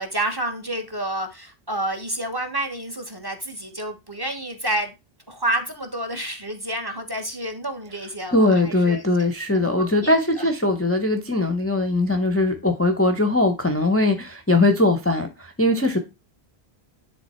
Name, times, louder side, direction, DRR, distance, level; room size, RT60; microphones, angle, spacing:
voice 1, 0.0-4.9 5.3-9.3 9.5-10.5, right 1 dB, 20° right, 1.3 m, -29 dB
voice 2, 8.3-16.0, left 2 dB, 15° left, 0.7 m, -20 dB
10.5 x 3.7 x 4.3 m
omnidirectional pair, 1.1 m